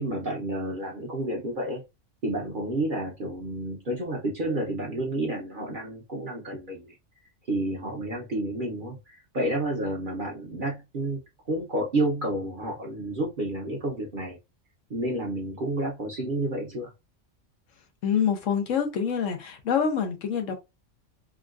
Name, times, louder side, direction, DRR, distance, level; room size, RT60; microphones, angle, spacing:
voice 1, 0.0-1.8 2.2-7.0 7.5-11.2 11.5-14.4 14.9-16.9, right 1 dB, 50° right, 0.9 m, -30 dB
voice 2, 18.0-20.5, left 7 dB, 85° left, 1.2 m, -26 dB
3.6 x 2.2 x 2.4 m
omnidirectional pair, 1.3 m